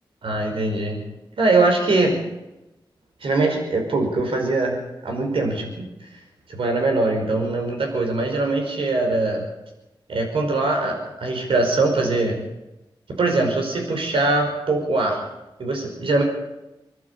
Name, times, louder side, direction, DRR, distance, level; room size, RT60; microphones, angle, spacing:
voice 1, 0.2-1.0 1.4-2.2 3.2-5.9 6.5-9.4 10.1-12.4 13.2-15.2 15.6-16.2, right 2 dB, 90° right, 2 dB, 5.2 m, -22 dB
26.5 x 12.0 x 8.7 m, 0.97 s
wide cardioid pair, 95°, 9 cm